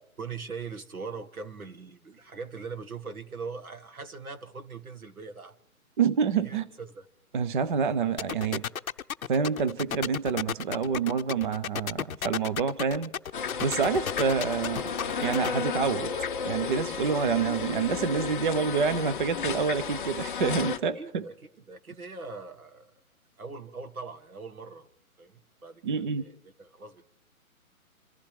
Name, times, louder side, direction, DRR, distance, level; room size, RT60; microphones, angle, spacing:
voice 1, 0.2-5.6 6.4-7.1 20.9-21.3 21.7-22.9 23.4-24.9 25.2-27.0, right 4 dB, 75° right, 8 dB, 1.7 m, -41 dB
voice 2, 6.0-6.7 7.3-8.6 9.3-13.1 13.6-16.1 16.4-21.2 25.8-26.2, right 6 dB, 35° right, 12 dB, 0.6 m, -27 dB
sound 1, 8.2-15.5, left 8 dB, 70° left, 0.6 m, -32 dB
sound 2, 13.3-20.8, left 6 dB, 35° left, 0.6 m, -33 dB
27.5 x 14.5 x 3.3 m, 0.73 s
figure-of-eight pair, 135°, 43 cm